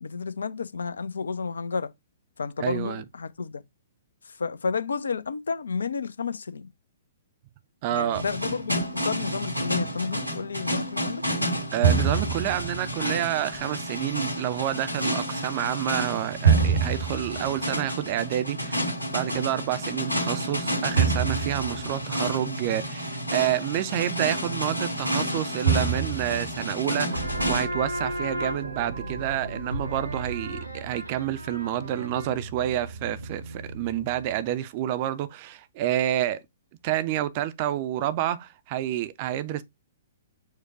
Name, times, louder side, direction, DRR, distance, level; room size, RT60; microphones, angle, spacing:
voice 1, 0.0-1.9 2.4-3.6 4.2-6.7 7.9-11.2, left 5 dB, 70° left, 0.5 m, -31 dB
voice 2, 2.6-3.0 7.8-8.2 11.7-36.4 36.8-39.6, right 12 dB, 40° right, 0.5 m, -29 dB
sound 1, 8.1-27.7, right 3 dB, 90° left, 2.2 m, -28 dB
sound 2, 27.1-34.4, right 1 dB, 80° right, 0.9 m, -34 dB
4.6 x 2.2 x 4.7 m
figure-of-eight pair, 115°, 0 cm